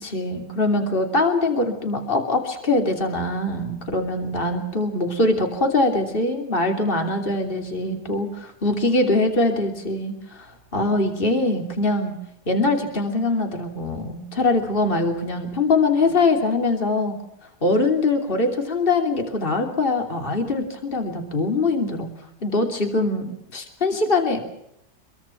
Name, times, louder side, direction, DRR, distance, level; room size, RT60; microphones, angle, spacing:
voice 1, 0.0-12.2 12.5-17.2 17.6-22.1 22.4-24.4, left 2 dB, 30° left, 4 dB, 3.2 m, -23 dB
26.0 x 22.5 x 6.0 m, 0.78 s
omnidirectional pair, 1.9 m